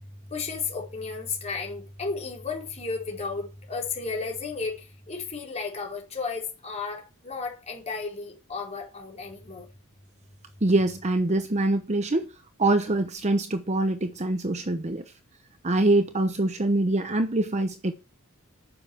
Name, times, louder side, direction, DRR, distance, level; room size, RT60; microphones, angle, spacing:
voice 1, 0.3-9.7, left 4 dB, 30° left, 4.3 m, -33 dB
voice 2, 10.6-12.3 12.6-15.0 15.6-17.9, right 2 dB, 30° right, 0.9 m, -24 dB
9.7 x 7.2 x 7.1 m
head